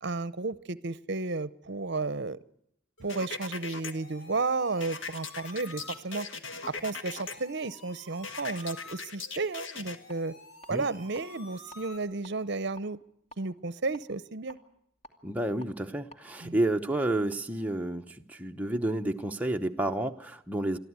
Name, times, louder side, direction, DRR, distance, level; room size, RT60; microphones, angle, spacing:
voice 1, 0.0-2.4 3.0-6.3 6.6-10.3 10.7-13.0 13.4-14.6 16.4-16.6, right 3 dB, 55° right, 17 dB, 0.7 m, -33 dB
sound 1, 3.0-12.0, left 2 dB, 90° left, 3.9 m, -52 dB
sound 2, 3.1-3.9 4.8-7.3 8.2-10.0, left 4 dB, 60° left, 1.5 m, -39 dB
sound 3, 10.1-10.2 10.6-11.2 11.6-11.8 12.2-13.4 13.9-15.7 16.1-16.2, equal, 30° left, 2.4 m, -51 dB
voice 2, 15.2-20.8, right 1 dB, 5° right, 4 dB, 0.9 m, -30 dB
23.5 x 14.0 x 9.5 m, 0.74 s
head